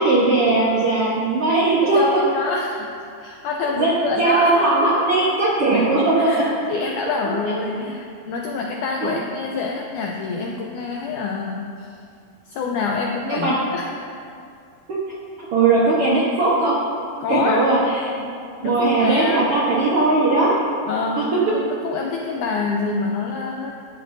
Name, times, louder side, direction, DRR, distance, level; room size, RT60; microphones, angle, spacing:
voice 1, 0.0-2.0 3.8-6.1 9.0-9.1 13.3-13.5 14.9-15.0 15.5-16.8 17.3-17.8 18.6-20.5 21.2-21.3, right 3 dB, 70° right, -6 dB, 1.3 m, -18 dB
voice 2, 1.8-5.0 5.7-11.9 12.5-14.2 17.2-17.7 18.2-18.3 18.6-19.5 20.9-23.7, left 4 dB, 90° left, 0 dB, 1.7 m, -26 dB
15.0 x 10.5 x 2.6 m, 2.4 s
omnidirectional pair, 4.4 m